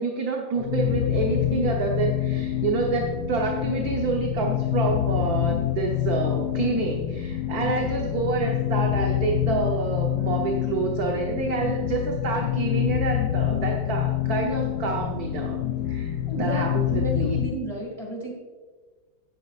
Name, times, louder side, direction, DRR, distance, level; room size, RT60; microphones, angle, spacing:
voice 1, 0.0-15.6 15.9-17.4, right 4 dB, 55° right, 0 dB, 1.2 m, -28 dB
sound 1, 0.6-17.6, left 12 dB, 70° left, 1.2 m, -26 dB
voice 2, 16.2-18.3, right 2 dB, 20° left, -1 dB, 1.7 m, -32 dB
12.0 x 9.8 x 2.4 m, 1.4 s
omnidirectional pair, 2.3 m